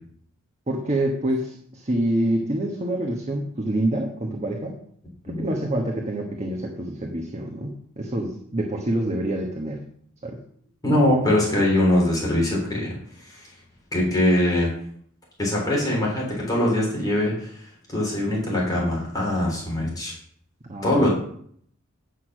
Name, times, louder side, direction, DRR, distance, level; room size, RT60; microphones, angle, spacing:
voice 1, 0.7-4.8 5.3-9.8 10.2-10.4 20.6-21.1, right 1 dB, 30° right, 1 dB, 1.3 m, -26 dB
voice 2, 10.8-12.9 13.3-13.5 13.9-14.7 15.4-17.5 17.9-20.1 20.8-21.1, left 1 dB, 15° left, -5 dB, 3.7 m, -22 dB
9.8 x 6.5 x 6.1 m, 0.63 s
head